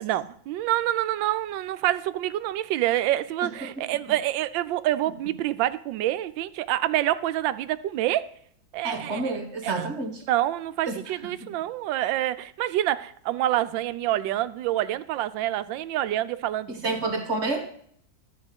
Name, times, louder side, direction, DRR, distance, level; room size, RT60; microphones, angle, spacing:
voice 1, 0.0-8.3 8.7-9.4 9.6-9.8 10.3-16.8, right 13 dB, 85° right, 1.3 m, -27 dB
voice 2, 8.8-10.2 10.9-11.0 11.4-11.5 16.7-17.7, right 3 dB, 40° right, 1.6 m, -29 dB
12.5 x 4.8 x 8.0 m
omnidirectional pair, 2.0 m